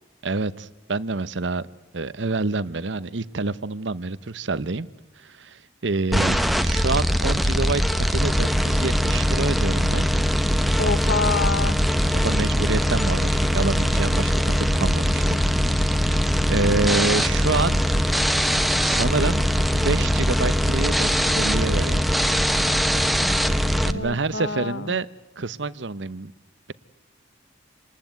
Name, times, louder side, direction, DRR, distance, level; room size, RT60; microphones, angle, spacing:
voice 1, 0.2-1.7 1.9-4.9 5.2-10.1 12.1-15.4 16.1-17.8 18.8-19.4 19.7-22.1 23.8-25.1 25.4-26.3, right 3 dB, 70° right, 17 dB, 0.9 m, -27 dB
sound 1, 6.1-23.9, equal, ahead, 1.0 m, -21 dB
voice 2, 10.8-11.8 23.8-25.0, left 4 dB, 75° left, 15 dB, 1.2 m, -27 dB
27.0 x 19.5 x 9.3 m, 1.0 s
head